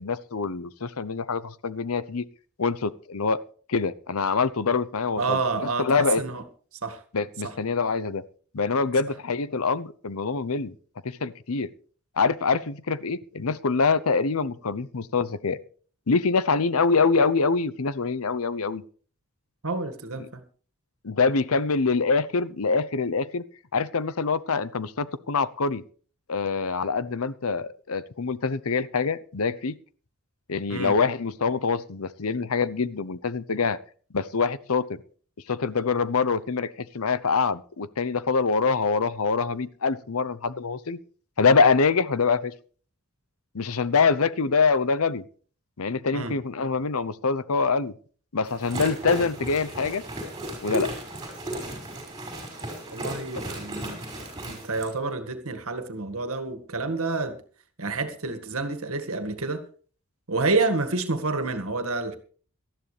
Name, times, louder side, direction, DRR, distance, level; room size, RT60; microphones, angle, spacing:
voice 1, 0.0-2.2 2.6-3.4 3.7-6.2 7.1-8.2 8.5-10.7 11.0-11.7 12.2-15.6 16.1-18.8 21.0-23.4 23.7-25.8 26.3-29.8 30.5-33.8 34.1-35.0 35.5-41.0 41.4-42.5 43.5-45.2 45.8-47.9 48.3-50.0 50.6-50.9, left 4 dB, 75° left, 0.8 m, -25 dB
voice 2, 5.2-6.4 6.8-7.0 7.4-7.5 19.6-20.4 30.7-31.0 46.1-46.4 52.9-54.0 54.5-57.4 57.8-59.6 60.3-62.2, right 3 dB, 75° right, 1.8 m, -28 dB
sound 1, 48.4-54.9, right 1 dB, 20° right, 5.5 m, -35 dB
18.5 x 13.0 x 3.3 m
head